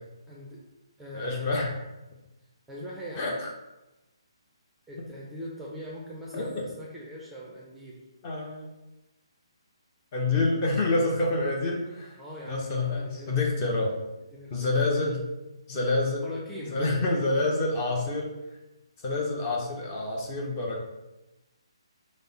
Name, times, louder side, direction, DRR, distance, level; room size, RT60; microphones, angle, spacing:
voice 1, 0.3-0.6 1.0-1.5 2.7-3.4 4.9-8.0 12.2-13.4 14.3-14.8 16.1-17.2, equal, ahead, -6 dB, 0.6 m, -41 dB
voice 2, 1.1-1.7 3.2-3.5 6.3-6.6 8.2-8.7 10.1-12.2 12.5-14.0 14.5-15.2 15.7-16.2 16.7-18.3 19.0-20.8, left 2 dB, 30° left, -1 dB, 0.8 m, -27 dB
5.2 x 2.1 x 4.0 m, 1.0 s
hypercardioid pair, 155°, 3 cm